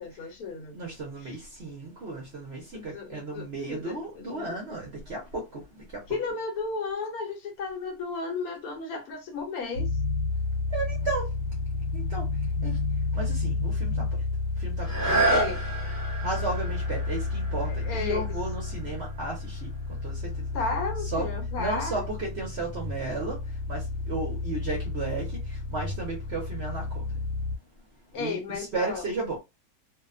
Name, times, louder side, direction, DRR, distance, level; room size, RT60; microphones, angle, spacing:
voice 1, 0.0-0.8 1.2-1.3 2.7-4.6 6.1-9.9 15.3-15.6 17.6-18.3 20.5-22.0 28.1-29.0, left 4 dB, 70° left, 1.1 m, -34 dB
voice 2, 0.7-6.2 10.7-11.3 11.9-15.5 16.2-20.5 21.1-21.3 21.6-27.2 28.1-29.4, right 3 dB, 55° right, 0.8 m, -34 dB
sound 1, 9.7-27.6, left 3 dB, 85° left, 1.2 m, -31 dB
sound 2, 14.8-20.4 21.0-21.1, right 2 dB, 15° right, 0.7 m, -31 dB
2.7 x 2.1 x 2.3 m
omnidirectional pair, 1.8 m